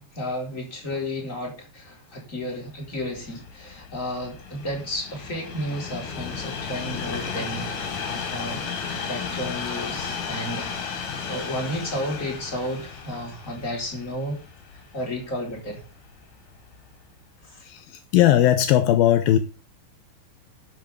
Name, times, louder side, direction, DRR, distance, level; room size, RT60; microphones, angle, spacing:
voice 1, 0.0-7.7 8.3-10.7 11.3-14.4 14.9-15.8 17.5-17.6, left 1 dB, 20° left, 0 dB, 4.5 m, -32 dB
Train, 2.8-16.1 16.7-16.9, left 6 dB, 60° left, 4.0 m, -34 dB
voice 2, 17.6-19.4, left 12 dB, 80° left, 10 dB, 2.7 m, -18 dB
12.0 x 5.9 x 6.8 m, 0.33 s
omnidirectional pair, 4.2 m